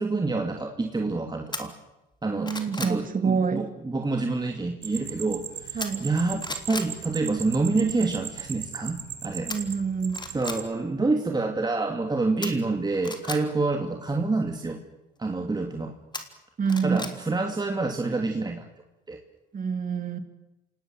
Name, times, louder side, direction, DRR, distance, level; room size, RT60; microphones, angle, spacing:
voice 1, 0.0-1.7 2.2-9.5 10.3-14.8 15.2-15.9 16.8-18.7 19.1-19.2, right 3 dB, 20° right, 3 dB, 2.6 m, -27 dB
sound 1, 1.5-1.6 2.1-3.0 5.8-6.1 6.4-6.9 9.5-9.6 10.1-10.6 12.4-13.4 16.1-17.1 17.5-17.6, left 2 dB, 20° left, 3.5 m, -35 dB
voice 2, 2.3-3.7 5.7-6.1 9.5-10.2 16.6-17.1 19.5-20.2, right 5 dB, 45° right, 8 dB, 3.3 m, -27 dB
sound 2, 4.8-10.7, right 9 dB, 70° right, 2.6 m, -38 dB
27.0 x 19.0 x 7.7 m, 0.95 s
cardioid pair, 90°, 20 cm